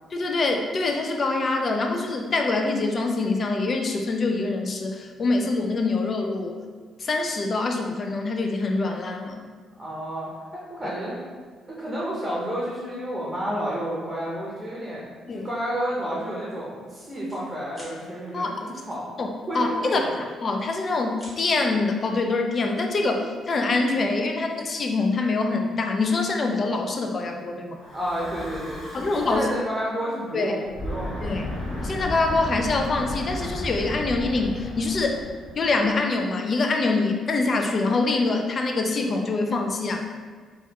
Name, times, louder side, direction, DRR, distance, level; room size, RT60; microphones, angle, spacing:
voice 1, 0.1-6.6 7.0-9.4 15.3-15.5 18.3-18.5 19.2-19.3 19.5-20.0 20.4-27.8 28.9-29.5 30.3-30.5 31.2-31.4 31.8-35.2 35.6-40.0, left 3 dB, 45° left, 4 dB, 0.3 m, -25 dB
voice 2, 9.8-11.2 11.8-19.1 19.4-20.2 27.9-31.3, equal, 10° right, -6 dB, 0.7 m, -31 dB
sound 1, 15.4-15.6 16.1-16.3 16.5-17.4 17.7-18.0 19.5-20.3 20.7-21.4, equal, 10° left, 1.1 m, -48 dB
Breathing / Wind, 27.8-29.7 30.6-36.0, left 1 dB, 65° left, 0.8 m, -34 dB
3.1 x 2.3 x 2.8 m, 1.5 s
cardioid pair, 90°, 0 cm